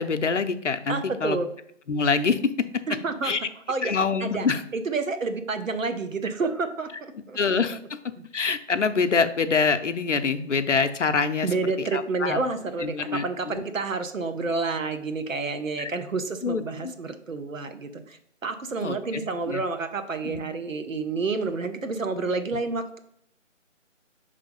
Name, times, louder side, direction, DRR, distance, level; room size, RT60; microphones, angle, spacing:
voice 1, 0.0-1.4 1.9-2.5 3.2-3.4 3.8-4.6 7.3-8.0 8.3-11.5 11.8-12.4 12.8-13.6 15.8-15.9 16.4-16.9 18.8-19.6 20.2-20.4, left 5 dB, 70° left, 9 dB, 0.6 m, -25 dB
voice 2, 0.9-1.5 2.9-3.3 3.7-3.9 4.2-4.5 4.7-7.4 11.4-23.0, right 4 dB, 90° right, 8 dB, 0.9 m, -29 dB
5.6 x 3.4 x 5.3 m, 0.69 s
figure-of-eight pair, 175°, 38 cm